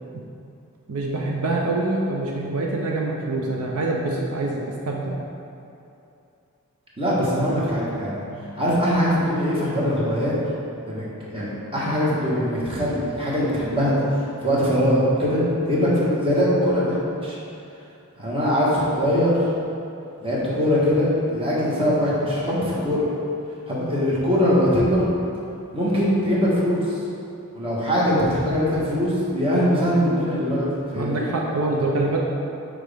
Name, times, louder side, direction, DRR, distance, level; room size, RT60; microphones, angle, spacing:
voice 1, 0.9-5.2 31.0-32.2, right 2 dB, 80° right, -1 dB, 0.6 m, -25 dB
voice 2, 7.0-8.2 8.6-10.3 10.9-11.0 11.3-13.9 14.4-15.4 15.7-17.4 18.2-19.5 20.2-23.0 23.7-25.0 25.7-27.0 27.5-30.6 30.9-31.2, equal, 25° right, -7 dB, 1.3 m, -22 dB
6.2 x 4.9 x 3.5 m, 2.7 s
head